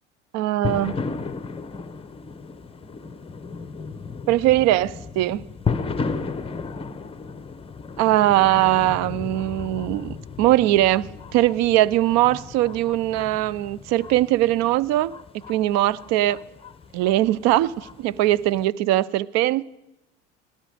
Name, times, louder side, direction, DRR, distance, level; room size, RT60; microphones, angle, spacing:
voice 1, 0.3-1.0 4.3-5.4 8.0-15.1 15.5-16.4 16.9-19.6, right 15 dB, 50° right, 0.5 m, -21 dB
sound 1, 0.6-18.6, left 4 dB, 15° left, 0.8 m, -34 dB
17.0 x 12.5 x 5.0 m
hypercardioid pair, 75°, 35 cm